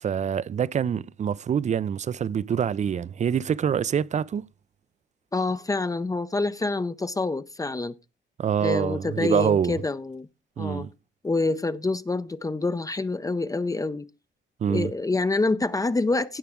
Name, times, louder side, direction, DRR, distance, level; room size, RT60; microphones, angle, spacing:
voice 1, 0.0-4.4 8.4-9.8 10.6-10.9 14.6-14.9, right 8 dB, 35° right, 0.5 m, -25 dB
voice 2, 5.3-7.9 8.6-10.3 10.6-10.9 11.2-14.1 14.7-16.4, left 3 dB, 15° left, 0.5 m, -27 dB
16.5 x 5.8 x 3.6 m
cardioid pair, 90°, 20 cm